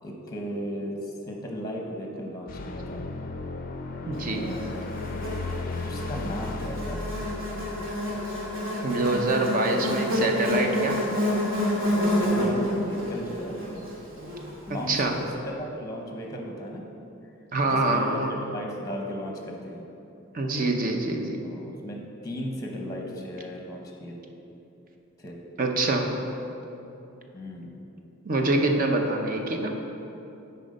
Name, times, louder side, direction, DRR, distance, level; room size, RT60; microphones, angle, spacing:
voice 1, 0.0-3.1 4.1-4.9 5.8-7.0 12.1-13.6 14.7-16.8 17.6-18.2 18.5-19.8 21.4-24.2 25.2-25.4 27.3-27.8, equal, 15° left, 0 dB, 0.8 m, -36 dB
sound 1, 2.5-9.1, left 3 dB, 40° left, 0.4 m, -36 dB
voice 2, 4.1-4.6 8.8-11.0 14.7-15.2 17.5-18.3 20.3-21.4 25.6-26.3 28.2-29.7, right 2 dB, 40° right, 3 dB, 0.6 m, -25 dB
Buzz, 4.5-14.9, left 1 dB, 65° right, 1.5 m, -29 dB
8.8 x 4.3 x 5.3 m, 2.9 s
head